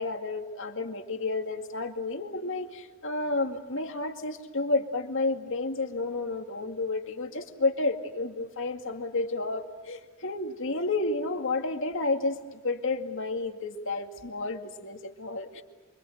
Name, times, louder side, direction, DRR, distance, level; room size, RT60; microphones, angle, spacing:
voice 1, 0.0-15.6, left 3 dB, 60° left, 5 dB, 2.2 m, -31 dB
28.5 x 24.5 x 7.9 m, 1.2 s
head